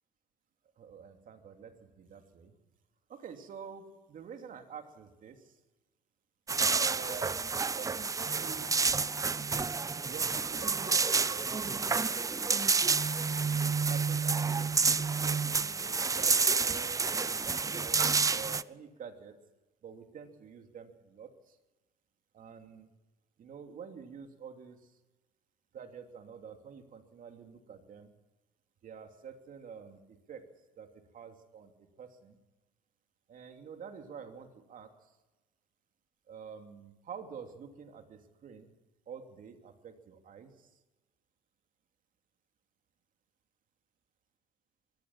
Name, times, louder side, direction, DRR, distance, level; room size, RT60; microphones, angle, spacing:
voice 1, 0.8-2.5 3.1-5.6 6.8-8.8 10.1-12.7 13.4-14.8 15.7-18.0 18.3-19.4 19.8-21.6 22.3-22.9 23.4-25.0 25.7-28.1 28.8-32.4 33.3-35.2 36.3-38.7 39.1-40.8, right 7 dB, 55° right, 5 dB, 3.0 m, -48 dB
sound 1, 6.5-18.6, right 4 dB, 20° right, 0.6 m, -29 dB
22.5 x 16.0 x 7.3 m, 1.1 s
cardioid pair, 110°, 17 cm